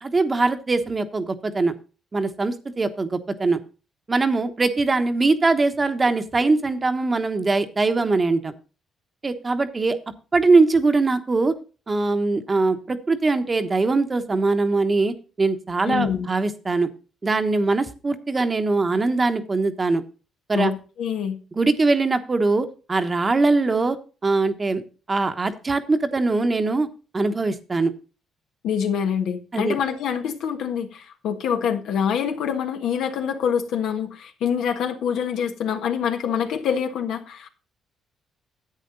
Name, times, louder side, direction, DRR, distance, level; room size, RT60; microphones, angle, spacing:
voice 1, 0.0-1.7 2.1-3.6 4.1-8.5 9.2-10.0 10.3-11.5 11.9-16.9 17.2-20.0 20.5-20.7 21.5-24.0 24.2-24.8 25.1-26.9 27.1-27.9 29.5-29.8, right 3 dB, 30° right, 1.1 m, -22 dB
voice 2, 15.8-16.3 20.5-21.4 28.6-37.5, left 8 dB, 80° left, 1.5 m, -25 dB
10.5 x 8.3 x 3.9 m
cardioid pair, 90°, 0 cm